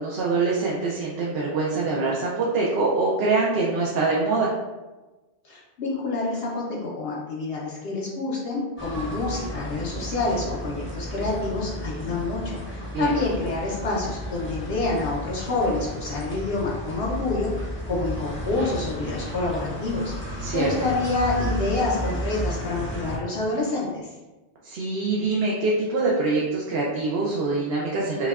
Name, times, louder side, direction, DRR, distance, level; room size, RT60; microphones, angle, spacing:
voice 1, 0.0-4.5 12.9-13.1 20.4-20.7 24.6-28.3, right 3 dB, 70° right, -4 dB, 0.8 m, -24 dB
voice 2, 5.4-24.1, left 3 dB, 70° left, -5 dB, 0.9 m, -28 dB
sound 1, 8.8-23.2, equal, 15° left, 0.7 m, -33 dB
5.4 x 2.2 x 2.3 m, 1.1 s
omnidirectional pair, 1.1 m